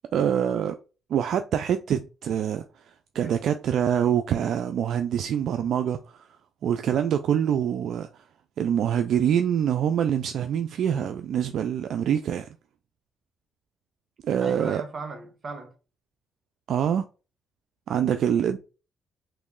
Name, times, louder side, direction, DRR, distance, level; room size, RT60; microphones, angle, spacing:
voice 1, 0.1-0.8 1.1-2.7 3.1-6.3 6.6-8.1 8.6-12.5 14.2-14.8 16.7-17.0 17.9-18.6, right 9 dB, 70° right, 0.3 m, -25 dB
voice 2, 14.4-15.7, right 3 dB, 40° right, 1.1 m, -37 dB
3.1 x 2.6 x 3.6 m
cardioid pair, 90°, 0 cm